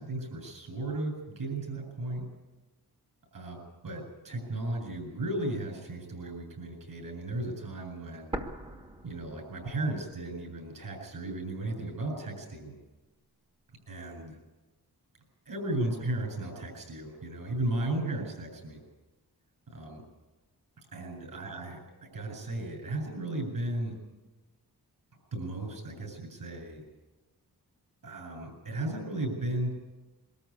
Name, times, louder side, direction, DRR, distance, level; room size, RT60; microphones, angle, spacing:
voice 1, 0.0-2.2 3.3-8.4 9.0-12.7 13.9-14.4 15.5-18.8 19.7-20.0 20.9-24.0 25.3-26.8 28.0-29.7, right 2 dB, 60° right, 2 dB, 7.8 m, -35 dB
sound 1, 8.3-10.3 10.6-10.7 11.4-12.3, right 1 dB, 15° right, 1.4 m, -41 dB
23.0 x 13.5 x 9.8 m, 1.1 s
wide cardioid pair, 155°, 39 cm